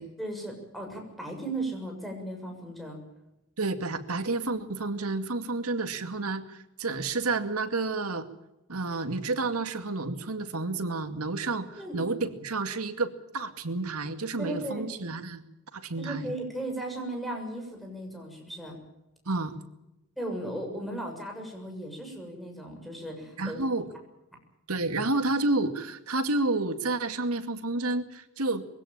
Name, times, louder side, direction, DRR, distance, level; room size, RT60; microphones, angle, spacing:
voice 1, 0.2-3.0 11.8-12.0 14.4-15.2 16.0-18.8 20.2-23.7, right 1 dB, ahead, 1 dB, 7.0 m, -36 dB
voice 2, 3.6-8.3 8.7-15.4 15.7-16.3 19.3-19.6 23.4-23.9 24.7-28.6, right 3 dB, 75° right, 9 dB, 2.3 m, -30 dB
23.0 x 16.5 x 8.8 m, 0.93 s
head